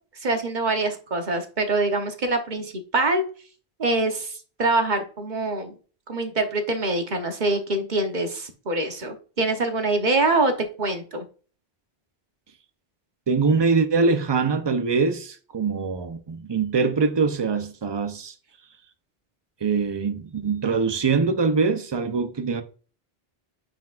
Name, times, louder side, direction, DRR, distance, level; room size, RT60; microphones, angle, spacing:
voice 1, 0.2-3.2 3.8-5.7 6.1-10.5 10.8-11.3, right 2 dB, 50° right, 1.2 m, -24 dB
voice 2, 13.3-18.3 19.6-22.6, right 4 dB, 30° right, 0.7 m, -23 dB
9.4 x 5.0 x 2.5 m
omnidirectional pair, 1.0 m